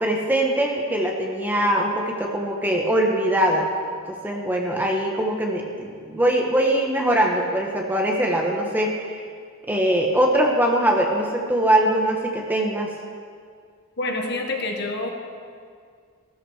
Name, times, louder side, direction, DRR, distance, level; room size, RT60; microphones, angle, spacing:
voice 1, 0.0-3.7 4.1-9.1 9.7-12.9, right 1 dB, 10° right, 0 dB, 1.2 m, -22 dB
voice 2, 14.0-15.1, left 2 dB, 50° left, 2 dB, 1.6 m, -27 dB
15.5 x 13.5 x 4.9 m, 2.1 s
head